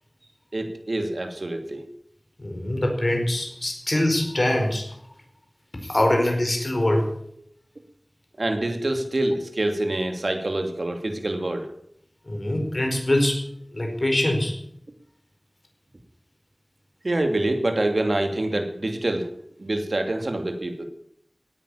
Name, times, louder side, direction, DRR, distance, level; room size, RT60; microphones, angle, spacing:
voice 1, 0.5-1.8 8.4-11.7 17.0-19.3 19.6-20.8, right 1 dB, 80° right, 5 dB, 2.8 m, -26 dB
voice 2, 2.4-4.9 5.8-7.1 12.3-13.4 13.7-14.6, left 1 dB, 55° left, 2 dB, 4.8 m, -23 dB
17.5 x 9.4 x 8.5 m, 0.68 s
wide cardioid pair, 45°, 0 cm